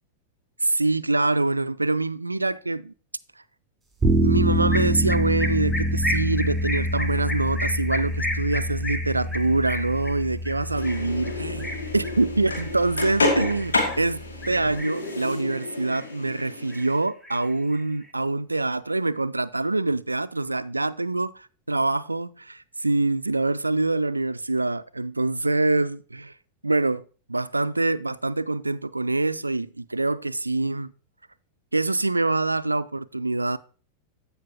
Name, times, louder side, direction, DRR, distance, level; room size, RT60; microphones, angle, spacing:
voice 1, 0.6-2.9 4.2-14.2 14.5-26.3 26.6-27.0 27.3-30.9 31.7-33.6, right 2 dB, 80° right, 0.3 m, -25 dB
sound 1, 4.0-14.8, right 1 dB, 10° right, 3.6 m, -27 dB
sound 2, 4.7-14.1 14.4-15.1 15.5-16.4 16.7-18.1, left 1 dB, 10° left, 1.1 m, -34 dB
sound 3, 10.7-17.0, left 2 dB, 75° left, 2.3 m, -29 dB
15.0 x 5.6 x 2.8 m
figure-of-eight pair, 90°, 0 cm